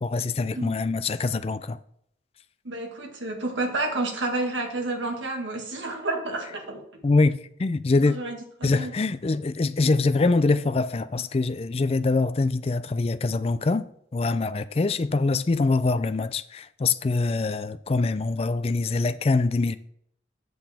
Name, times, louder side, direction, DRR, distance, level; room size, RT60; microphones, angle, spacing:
voice 1, 0.0-1.8 7.0-8.2 8.6-13.9 14.1-19.8, left 3 dB, 30° left, 0.3 m, -24 dB
voice 2, 2.7-6.8 8.0-8.9, right 2 dB, 90° right, 1.7 m, -30 dB
7.9 x 6.7 x 3.6 m
head